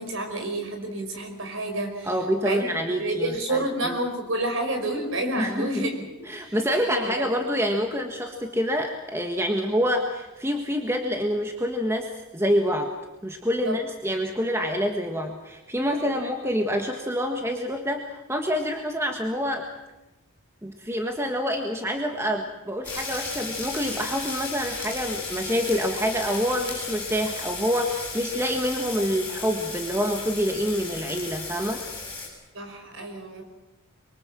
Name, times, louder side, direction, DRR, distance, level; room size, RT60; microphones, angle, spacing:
voice 1, 0.0-2.2 2.4-6.0 6.4-6.6 7.0-7.3 13.6-13.8 16.0-16.3 32.5-33.4, right 1 dB, 65° right, 5 dB, 5.2 m, -29 dB
voice 2, 2.1-4.0 5.4-5.9 6.3-12.9 13.2-19.7 20.6-31.8, equal, 10° right, 4 dB, 1.5 m, -27 dB
sound 1, 22.8-32.3, left 3 dB, 10° left, 7.6 m, -35 dB
25.0 x 23.5 x 7.5 m, 1.0 s
head